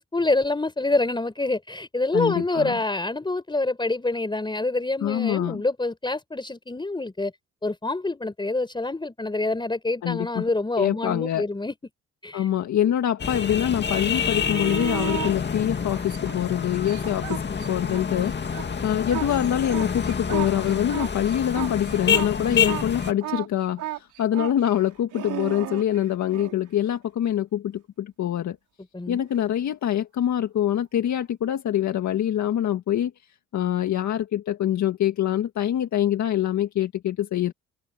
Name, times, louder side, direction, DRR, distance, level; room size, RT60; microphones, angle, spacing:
voice 1, 0.0-7.3 7.6-11.7 12.2-12.5 28.9-29.3, left 2 dB, 15° left, 4.4 m, -26 dB
voice 2, 2.1-2.7 5.0-5.6 10.0-10.5 10.8-11.5 12.3-28.6 29.1-33.1 33.5-37.5, left 11 dB, 65° left, 1.8 m, -25 dB
sound 1, 13.2-23.1, left 6 dB, 35° left, 2.3 m, -28 dB
sound 2, 14.1-15.3 16.0-18.0 18.3-26.6 29.3-29.4, right 13 dB, 85° right, 5.2 m, -35 dB
cardioid pair, 90°, 30 cm